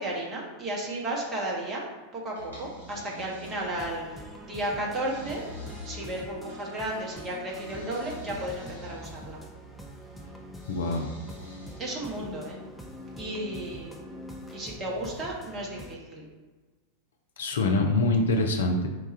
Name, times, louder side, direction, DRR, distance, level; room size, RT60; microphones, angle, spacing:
voice 1, 0.0-1.8 2.1-5.4 5.8-9.4 11.8-12.6 13.2-13.9 14.5-16.2, right 1 dB, 25° right, -3 dB, 1.1 m, -34 dB
sound 1, 2.4-4.0 4.6-6.6 7.5-9.4 10.5-12.1, left 1 dB, 75° right, 1.3 m, -46 dB
sound 2, 3.4-16.0, equal, 5° left, 0.6 m, -44 dB
voice 2, 10.7-11.2 17.4-18.9, left 2 dB, 65° left, 3 dB, 0.5 m, -25 dB
4.6 x 2.4 x 4.1 m, 1.3 s
figure-of-eight pair, 90°, 0 cm